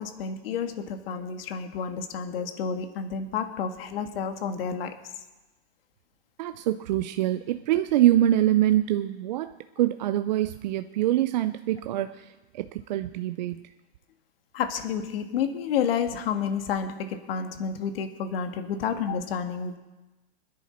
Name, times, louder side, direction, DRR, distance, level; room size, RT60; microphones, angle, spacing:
voice 1, 0.0-4.9 14.5-19.8, left 7 dB, 60° left, 7 dB, 1.6 m, -30 dB
voice 2, 6.4-13.6, right 13 dB, 45° right, 10 dB, 0.4 m, -25 dB
24.0 x 10.5 x 4.3 m, 1.1 s
supercardioid pair, 155°, 33 cm